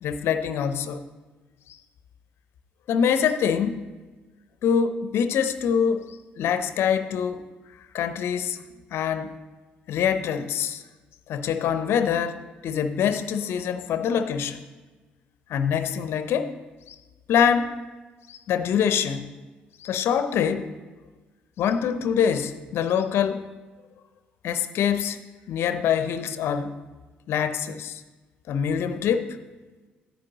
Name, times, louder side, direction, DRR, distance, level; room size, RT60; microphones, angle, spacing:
voice 1, 0.0-1.0 2.9-3.9 4.6-7.4 7.9-8.6 8.9-9.3 9.9-10.8 11.3-14.6 15.5-16.6 16.9-17.0 17.3-17.7 18.3-19.3 19.8-20.7 21.6-23.5 24.4-25.2 25.5-26.8 27.3-28.0 28.5-29.4, left 8 dB, 55° left, 11 dB, 0.6 m, -25 dB
13.0 x 9.6 x 2.9 m, 1.3 s
figure-of-eight pair, 45°, 5 cm